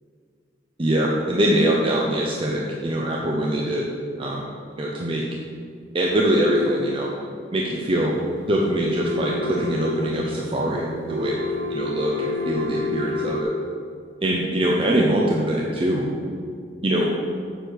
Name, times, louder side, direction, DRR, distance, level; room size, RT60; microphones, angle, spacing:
voice 1, 0.8-3.9 4.2-4.5 4.8-5.3 5.9-7.2 7.5-8.2 8.5-11.3 11.7-13.5 14.2-16.1 16.8-17.2, right 1 dB, 30° right, -2 dB, 0.7 m, -23 dB
sound 1, 8.1-13.4, left 3 dB, 90° right, 0.8 m, -30 dB
8.0 x 4.9 x 6.3 m, 2.3 s
head